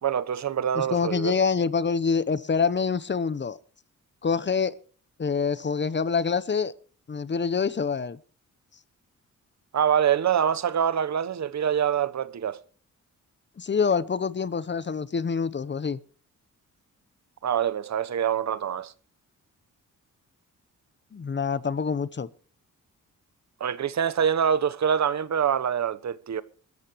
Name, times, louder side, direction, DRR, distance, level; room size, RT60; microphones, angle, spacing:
voice 1, 0.0-1.4 9.7-12.6 17.4-18.9 23.6-26.4, right 8 dB, 60° right, 1.0 m, -25 dB
voice 2, 0.7-3.6 4.2-4.7 5.2-6.7 7.1-8.2 13.6-16.0 21.1-22.3, left 5 dB, 35° left, 0.9 m, -26 dB
21.0 x 13.5 x 3.1 m
cardioid pair, 85°, 31 cm